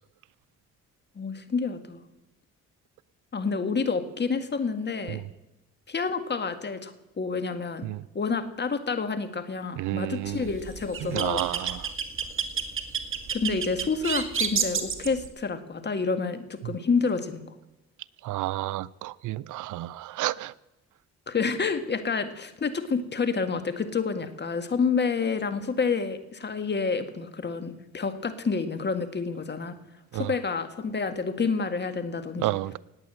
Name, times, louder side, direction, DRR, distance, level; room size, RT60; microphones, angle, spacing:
voice 1, 1.2-2.0 3.3-5.2 5.9-7.9 8.1-11.4 13.3-17.5 21.3-29.8 30.1-32.5, left 4 dB, 35° left, 1.9 m, -29 dB
voice 2, 9.8-10.5 11.0-11.9 16.6-16.7 18.2-20.5 30.1-30.3 32.4-32.8, right 16 dB, 80° right, 0.6 m, -31 dB
sound 1, 10.3-15.3, right 6 dB, 45° right, 1.9 m, -30 dB
18.5 x 8.9 x 7.7 m
cardioid pair, 90°, 30 cm